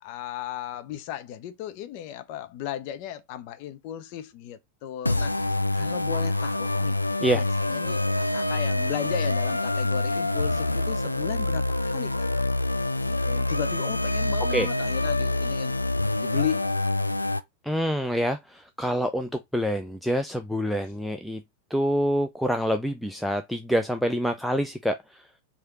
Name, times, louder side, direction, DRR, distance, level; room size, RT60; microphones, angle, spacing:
voice 1, 0.0-5.3 5.7-6.9 7.3-12.3 13.0-15.8 16.2-17.1, left 11 dB, 45° left, 0.6 m, -35 dB
sound 1, 5.1-17.4, left 2 dB, 85° left, 0.3 m, -26 dB
voice 2, 17.6-21.4 21.7-25.2, equal, ahead, 0.4 m, -26 dB
4.7 x 2.7 x 3.1 m
figure-of-eight pair, 90°, 0 cm